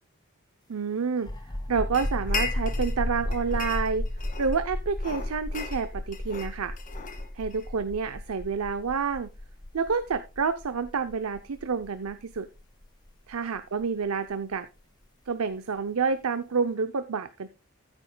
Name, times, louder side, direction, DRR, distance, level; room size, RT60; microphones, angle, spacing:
voice 1, 0.7-1.3 1.7-4.1 4.4-6.7 7.3-9.3 9.7-12.5 13.3-14.7 15.3-17.5, right 5 dB, 85° right, 11 dB, 0.6 m, -29 dB
sound 1, 1.2-14.6, left 1 dB, 20° left, 0.7 m, -34 dB
sound 2, 1.9-3.0 3.3-4.6 5.0-7.7, left 4 dB, 35° left, 1.5 m, -37 dB
14.5 x 8.9 x 2.2 m, 0.28 s
head